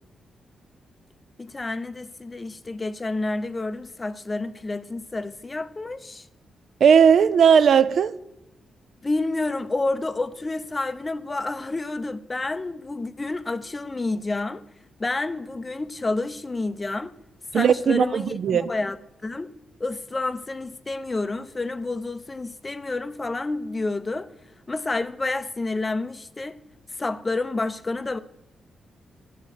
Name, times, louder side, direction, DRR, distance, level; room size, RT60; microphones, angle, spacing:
voice 1, 1.4-6.3 9.0-14.6 15.0-17.1 17.5-18.3 18.7-19.0 19.2-19.5 19.8-24.3 24.7-26.6 27.0-28.2, left 2 dB, 25° left, 0.5 m, -29 dB
voice 2, 6.8-8.1 17.5-18.7, right 7 dB, 65° right, 0.4 m, -17 dB
11.5 x 5.4 x 6.2 m
cardioid pair, 105°, 0 cm